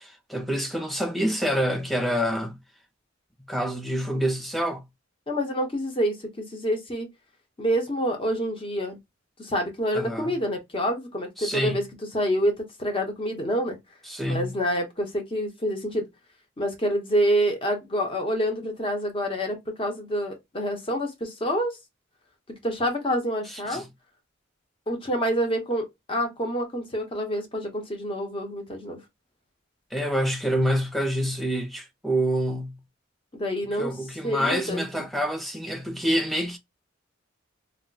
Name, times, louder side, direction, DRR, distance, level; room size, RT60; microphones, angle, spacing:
voice 1, 0.0-2.6 3.5-4.8 9.9-10.3 11.4-11.8 14.1-14.5 23.5-23.8 29.9-32.8 33.8-36.6, equal, ahead, 0.5 m, -27 dB
voice 2, 5.3-7.1 7.6-9.0 9.4-11.8 12.1-13.8 14.3-16.1 16.6-21.8 22.5-23.8 24.9-29.0 33.3-34.0 34.2-35.1, equal, 25° left, 0.8 m, -27 dB
2.2 x 2.1 x 3.8 m
head